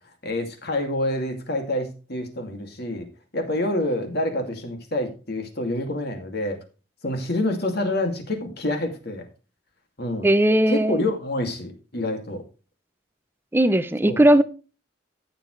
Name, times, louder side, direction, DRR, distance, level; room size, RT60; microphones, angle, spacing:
voice 1, 0.2-3.1 3.3-6.6 7.0-9.3 10.0-10.3 10.7-12.4 14.1-14.2, left 1 dB, 55° left, 4 dB, 2.5 m, -27 dB
voice 2, 10.2-11.0 13.5-14.4, right 1 dB, 10° right, 12 dB, 0.6 m, -18 dB
14.0 x 7.3 x 3.3 m, 0.34 s
head